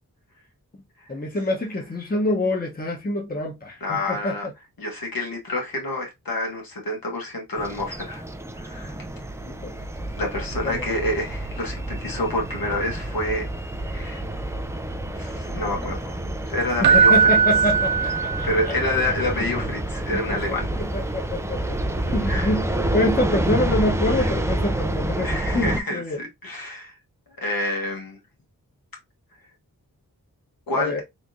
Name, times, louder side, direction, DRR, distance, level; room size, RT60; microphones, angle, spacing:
voice 1, 1.1-4.4 9.4-9.7 10.6-10.8 16.8-18.5 19.3-19.5 20.1-21.8 22.1-26.2 30.7-31.0, left 2 dB, 25° left, 1.1 m, -26 dB
voice 2, 3.8-4.5 4.8-8.2 8.5-8.9 10.2-13.4 13.8-14.2 15.1-16.2 16.5-17.2 18.4-20.7 22.3-22.5 24.2-24.3 25.1-26.9 27.4-28.2 30.7-31.0, left 1 dB, 70° left, 1.5 m, -28 dB
sound 1, 7.6-25.8, right 1 dB, 10° right, 0.4 m, -28 dB
Keyboard (musical), 16.8-18.8 22.0-22.2, right 6 dB, 90° right, 0.5 m, -19 dB
3.3 x 3.2 x 2.6 m
wide cardioid pair, 60°, 36 cm